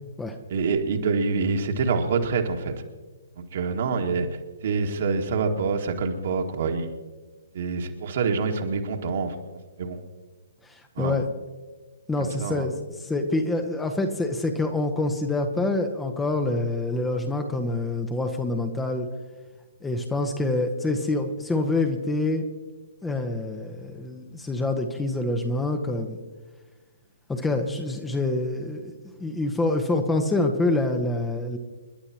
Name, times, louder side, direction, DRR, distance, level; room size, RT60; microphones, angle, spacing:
voice 1, 0.5-2.7 3.4-4.3 4.6-7.0 7.5-9.3 9.8-10.0 11.0-11.2 12.2-12.7, right 4 dB, 45° right, 4 dB, 1.9 m, -26 dB
voice 2, 10.6-11.2 12.1-19.1 19.8-22.4 23.0-26.2 27.3-31.6, left 2 dB, 10° left, 5 dB, 1.2 m, -26 dB
29.5 x 11.5 x 3.0 m, 1.3 s
figure-of-eight pair, 125°, 0 cm